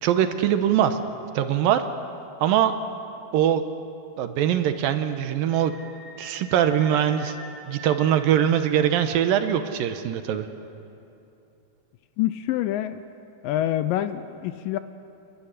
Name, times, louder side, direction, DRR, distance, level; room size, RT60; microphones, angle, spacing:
voice 1, 0.0-1.0 1.4-1.8 2.4-2.7 3.3-3.6 4.2-5.7 6.2-7.3 7.7-10.5, right 10 dB, 75° right, 9 dB, 2.5 m, -22 dB
Screaming, 5.4-8.8, left 1 dB, 5° left, 4.7 m, -45 dB
voice 2, 12.2-13.0 13.4-14.8, left 13 dB, 80° left, 12 dB, 2.1 m, -26 dB
29.0 x 12.5 x 10.0 m, 2.8 s
omnidirectional pair, 4.3 m